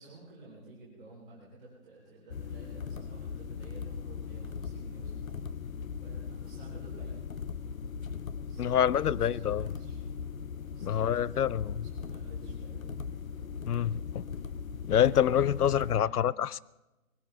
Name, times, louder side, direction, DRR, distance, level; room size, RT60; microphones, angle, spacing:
voice 1, 0.0-5.5 6.0-7.2 8.5-10.0 10.7-12.9 15.6-16.3, right 2 dB, 5° right, 1.5 m, -53 dB
sound 1, 2.3-16.0, left 6 dB, 65° left, 0.8 m, -39 dB
voice 2, 8.6-9.7 10.8-11.7 13.7-14.2 14.8-16.6, left 9 dB, 85° left, 0.6 m, -26 dB
21.0 x 16.5 x 3.9 m
hypercardioid pair, 175°, 45 cm